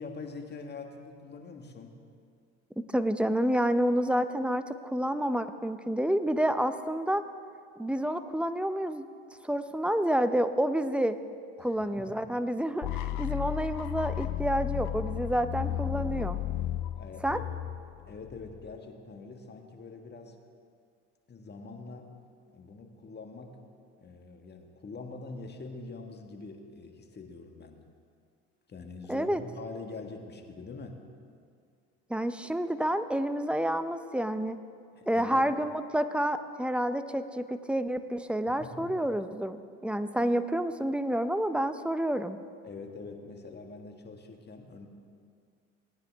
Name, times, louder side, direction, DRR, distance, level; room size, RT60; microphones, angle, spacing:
voice 1, 0.0-2.0 11.6-12.3 16.9-17.5 18.1-20.3 21.3-22.1 22.5-23.6 24.0-27.8 28.7-31.0 34.9-35.5 38.5-39.1 42.6-44.9, left 3 dB, 30° left, 4 dB, 1.6 m, -44 dB
voice 2, 2.8-7.2 7.8-9.0 9.4-11.2 11.6-16.4 17.2-17.4 29.1-29.4 32.1-34.6 35.1-42.4, right 1 dB, 5° right, 11 dB, 0.6 m, -29 dB
sound 1, 12.8-18.7, left 12 dB, 60° left, 0.7 m, -34 dB
19.0 x 9.8 x 3.5 m, 2.2 s
hypercardioid pair, 75°, 34 cm